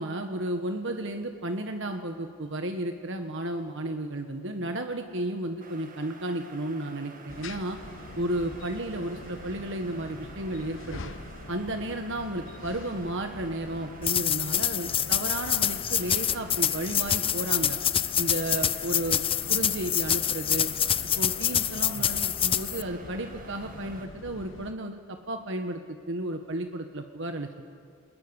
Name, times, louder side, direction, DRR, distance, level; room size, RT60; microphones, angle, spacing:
voice 1, 0.0-7.8 8.2-11.1 11.5-17.8 18.2-19.2 19.5-20.7 21.2-25.8 26.1-27.7, right 1 dB, 60° right, 5 dB, 1.5 m, -33 dB
sound 1, 5.6-24.1, right 3 dB, 40° right, 2.0 m, -49 dB
sound 2, 7.3-24.7, left 2 dB, 65° left, 1.1 m, -44 dB
sound 3, 14.0-22.8, left 10 dB, 25° left, 0.6 m, -26 dB
28.5 x 21.0 x 10.0 m, 2.2 s
head